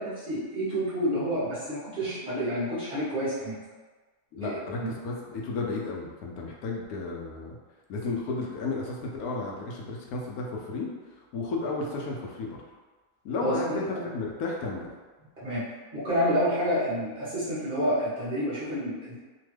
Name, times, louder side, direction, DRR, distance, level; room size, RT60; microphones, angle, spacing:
voice 1, 0.0-3.6 4.4-4.9 13.4-14.0 15.4-15.7 15.9-19.2, equal, 5° right, -11 dB, 0.9 m, -29 dB
voice 2, 4.3-7.6 7.9-10.9 11.3-12.6 13.2-14.9, left 3 dB, 70° left, -1 dB, 1.0 m, -33 dB
2.9 x 2.2 x 3.2 m, 1.3 s
omnidirectional pair, 1.7 m